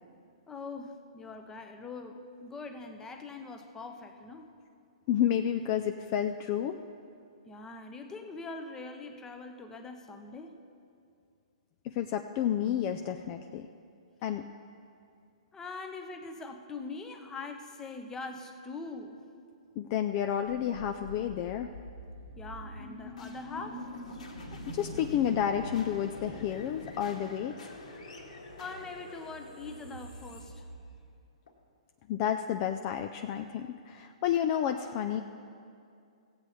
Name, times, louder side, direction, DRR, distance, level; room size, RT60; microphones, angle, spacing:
voice 1, 0.5-4.5 7.5-10.6 15.5-19.3 22.4-23.9 28.6-30.7, left 3 dB, 15° left, 6 dB, 0.8 m, -42 dB
voice 2, 5.1-6.8 11.8-13.7 14.2-14.5 19.8-21.7 24.7-27.6 32.1-35.2, left 10 dB, 35° left, 6 dB, 0.4 m, -30 dB
sound 1, 20.5-31.5, left 1 dB, 80° left, 1.8 m, -44 dB
16.5 x 8.0 x 4.2 m, 2.4 s
hypercardioid pair, 140°, 4 cm